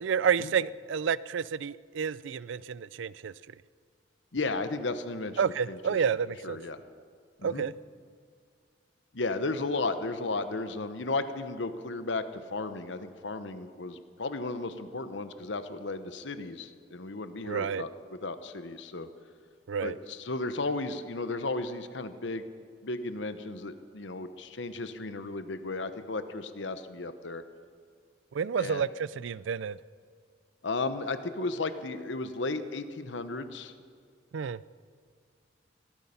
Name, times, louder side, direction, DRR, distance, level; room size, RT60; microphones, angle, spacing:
voice 1, 0.0-3.3 5.4-6.6 7.4-7.7 17.4-17.8 19.7-19.9 28.3-29.8 34.3-34.6, right 7 dB, 80° right, 20 dB, 0.4 m, -30 dB
voice 2, 4.3-6.0 6.4-6.8 7.4-7.6 9.1-19.1 19.8-22.5 22.8-27.4 28.6-28.8 30.6-33.7, left 3 dB, 75° left, 11 dB, 1.0 m, -34 dB
17.5 x 14.0 x 5.7 m, 2.1 s
head